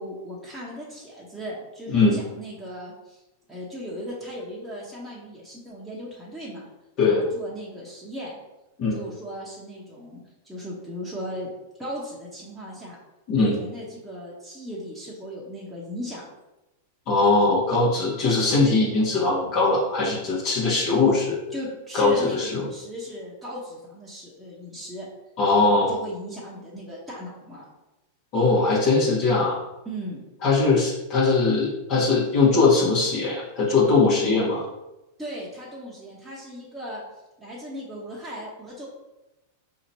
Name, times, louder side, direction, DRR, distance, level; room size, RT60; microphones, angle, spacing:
voice 1, 0.0-3.2 3.5-6.7 7.0-8.3 8.9-11.5 11.8-13.0 13.4-16.2 21.5-25.1 25.5-27.7 29.8-30.2 35.2-37.0 37.4-38.9, equal, 5° right, -7 dB, 1.0 m, -37 dB
voice 2, 17.1-21.4 21.9-22.7 25.4-25.9 28.3-29.6 30.4-34.6, left 3 dB, 45° left, -6 dB, 1.2 m, -21 dB
4.1 x 2.9 x 2.8 m, 0.98 s
hypercardioid pair, 105°, 0 cm